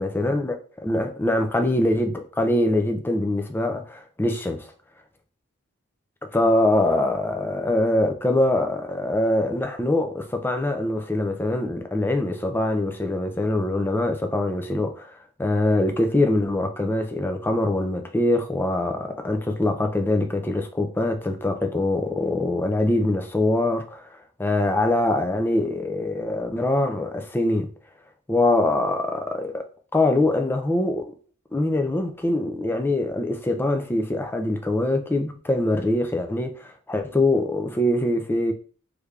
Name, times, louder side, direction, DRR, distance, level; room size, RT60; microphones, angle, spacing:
voice 1, 0.0-4.7 6.3-24.1 24.4-27.7 28.3-31.1 31.5-38.5, left 1 dB, 10° left, 0.3 m, -23 dB
3.3 x 3.2 x 2.4 m
head